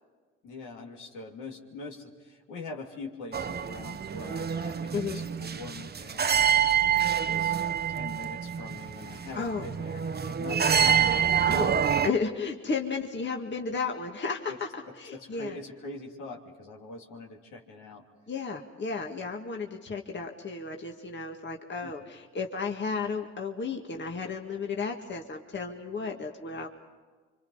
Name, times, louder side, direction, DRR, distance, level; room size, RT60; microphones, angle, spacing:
voice 1, 0.4-6.6 7.2-7.6 7.9-11.1 11.3-11.6 14.5-14.6 15.1-18.0 21.8-22.1, left 3 dB, 70° left, 1 dB, 3.0 m, -43 dB
sound 1, 3.3-12.1, right 8 dB, 30° right, 0.9 m, -27 dB
voice 2, 9.3-9.7 11.5-11.8 12.0-15.6 18.3-26.7, left 4 dB, 35° left, 2 dB, 2.0 m, -33 dB
27.0 x 25.0 x 5.7 m, 1.4 s
hypercardioid pair, 55°, 31 cm